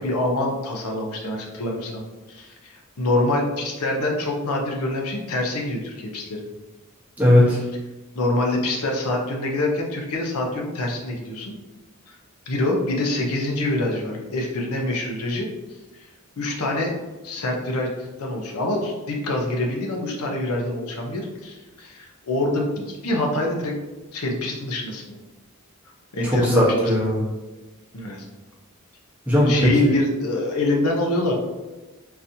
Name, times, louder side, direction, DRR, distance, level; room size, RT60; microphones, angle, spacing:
voice 1, 0.0-2.0 2.3-6.5 8.1-11.5 12.5-15.5 16.0-16.1 16.4-16.9 17.2-17.9 18.2-23.7 24.1-25.2 26.1-26.7 27.9-28.3 29.4-31.3, left 2 dB, 80° left, 1 dB, 0.7 m, -25 dB
voice 2, 7.2-7.6 26.2-27.2 29.3-29.9, left 1 dB, 5° right, -7 dB, 0.9 m, -18 dB
3.9 x 2.8 x 2.6 m, 1.2 s
head